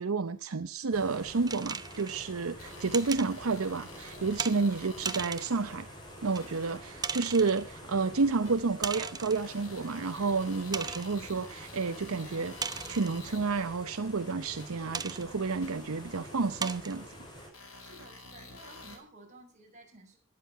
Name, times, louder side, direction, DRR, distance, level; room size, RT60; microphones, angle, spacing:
voice 1, 0.0-5.9 6.2-12.5 12.9-17.1, right 4 dB, 90° right, 0.7 m, -30 dB
sound 1, 0.9-17.5, equal, 20° left, 6.4 m, -47 dB
sound 2, 1.5-2.2 2.9-3.3 4.4-4.6 5.1-5.6 6.4-6.5 7.0-7.6 8.8-9.5 10.0-10.1 10.7-11.1 12.6-13.2 14.9-15.3 15.9-16.0 16.6-17.0, right 5 dB, 20° right, 0.7 m, -36 dB
sound 3, 2.6-5.8 6.3-6.8 7.4-7.5 8.5-8.6 9.3-13.6 14.6-14.7 15.6-15.7 16.6-16.7 17.5-19.0, left 2 dB, 75° left, 5.0 m, -49 dB
voice 2, 17.8-20.2, right 1 dB, 35° right, 5.5 m, -54 dB
13.0 x 11.5 x 5.6 m
head